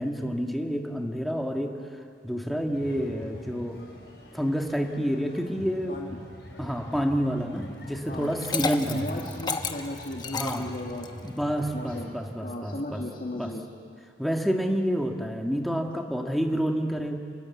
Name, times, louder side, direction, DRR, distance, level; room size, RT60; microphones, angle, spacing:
voice 1, 0.0-1.7 2.2-3.8 4.3-6.0 6.6-9.2 10.3-10.7 11.2-13.0 13.3-13.5 14.2-17.2, equal, ahead, 2 dB, 1.8 m, -28 dB
sound 1, 2.7-12.1, left 1 dB, 70° left, 6.0 m, -44 dB
voice 2, 5.9-6.2 8.1-8.3 8.9-11.1 11.7-12.2 12.4-13.6, left 1 dB, 50° left, -2 dB, 2.2 m, -36 dB
Liquid, 8.2-11.3, left 4 dB, 25° left, 1.1 m, -32 dB
28.0 x 20.5 x 8.5 m, 2.3 s
head